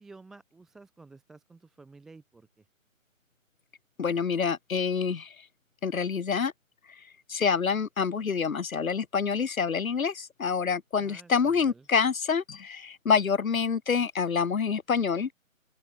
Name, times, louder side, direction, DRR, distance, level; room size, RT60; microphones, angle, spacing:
voice 1, 0.0-2.7 11.0-11.9, right 3 dB, ahead, 0.9 m, -52 dB
voice 2, 4.0-5.3 5.8-6.5 7.3-15.3, left 6 dB, 80° left, 0.9 m, -27 dB
open air
figure-of-eight pair, 150°, 41 cm